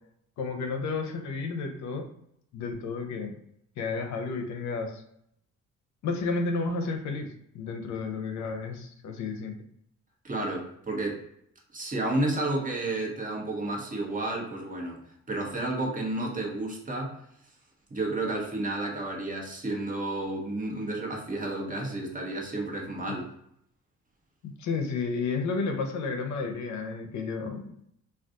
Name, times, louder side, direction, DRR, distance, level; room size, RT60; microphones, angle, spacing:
voice 1, 0.4-2.1 2.5-3.4 3.8-5.0 6.0-9.6 23.1-23.2 24.4-27.9, left 4 dB, 70° left, 4 dB, 0.6 m, -32 dB
voice 2, 10.2-11.2 11.7-15.0 15.3-17.2 17.9-23.3, right 2 dB, 25° right, -1 dB, 1.0 m, -31 dB
2.4 x 2.3 x 3.6 m, 0.72 s
cardioid pair, 90°, 30 cm